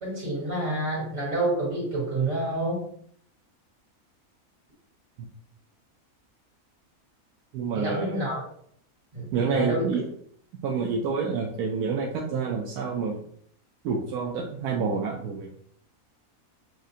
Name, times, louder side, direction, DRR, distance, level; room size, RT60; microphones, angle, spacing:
voice 1, 0.0-2.9 7.7-8.4 9.1-9.9, right 2 dB, 60° right, -5 dB, 2.4 m, -28 dB
voice 2, 7.5-8.2 9.3-10.1 10.6-13.2 13.8-15.5, right 5 dB, 85° right, 0 dB, 1.1 m, -28 dB
6.3 x 2.5 x 2.7 m, 0.64 s
omnidirectional pair, 1.6 m